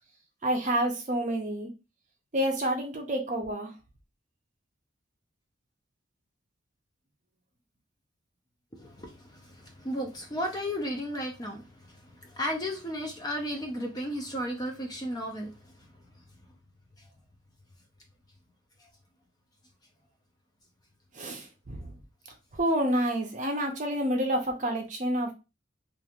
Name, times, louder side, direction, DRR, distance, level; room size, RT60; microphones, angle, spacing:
voice 1, 0.4-1.7 2.3-3.7 21.1-22.0 22.5-25.3, right 1 dB, 40° right, 3 dB, 0.6 m, -28 dB
voice 2, 8.7-15.9 17.0-17.1 18.8-18.9, equal, 20° left, 2 dB, 0.5 m, -35 dB
3.0 x 2.5 x 2.4 m, 0.28 s
head